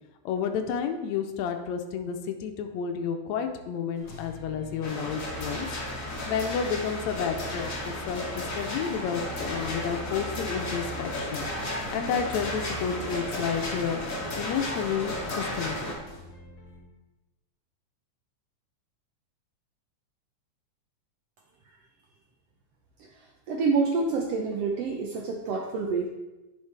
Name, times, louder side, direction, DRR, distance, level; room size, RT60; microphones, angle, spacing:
voice 1, 0.2-5.7 6.3-8.2 8.5-11.4 11.9-14.0 14.3-15.9, left 7 dB, 75° left, 6 dB, 1.7 m, -31 dB
sound 1, 3.9-16.8, right 1 dB, 45° left, 2.0 m, -44 dB
sound 2, 4.8-15.9, left 1 dB, 60° left, 0.8 m, -34 dB
voice 2, 23.5-26.1, right 4 dB, 75° right, 0 dB, 1.5 m, -27 dB
10.5 x 5.7 x 3.3 m, 1.1 s
omnidirectional pair, 3.6 m